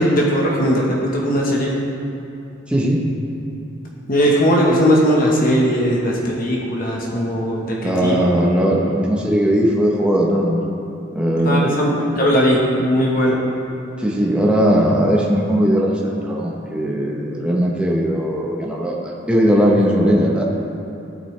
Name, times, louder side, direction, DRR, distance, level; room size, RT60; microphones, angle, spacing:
voice 1, 0.0-1.8 4.1-8.2 11.4-13.4, equal, 45° left, -3 dB, 1.2 m, -18 dB
voice 2, 2.7-3.0 7.8-10.6 11.1-12.0 14.0-20.4, equal, 5° right, -3 dB, 1.0 m, -18 dB
14.5 x 8.8 x 3.3 m, 2.8 s
head